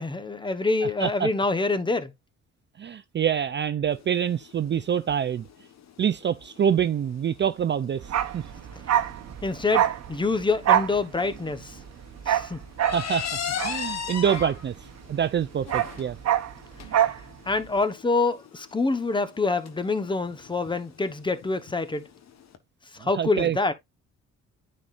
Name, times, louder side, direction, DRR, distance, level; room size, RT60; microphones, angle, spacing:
voice 1, 0.0-2.1 9.4-11.8 12.2-12.6 17.0-17.1 17.5-22.1 22.9-23.7, left 3 dB, 15° left, 1.1 m, -26 dB
voice 2, 0.8-1.3 2.8-5.5 6.0-8.4 12.9-13.3 13.6-14.7 15.1-16.2 23.0-23.6, right 8 dB, 40° right, 0.5 m, -26 dB
sound 1, 3.9-22.6, left 8 dB, 60° left, 1.3 m, -39 dB
Bark, 8.0-15.0 15.3-17.2 17.5-17.7, right 11 dB, 60° right, 1.0 m, -26 dB
9.7 x 4.3 x 2.5 m
cardioid pair, 90°, 30 cm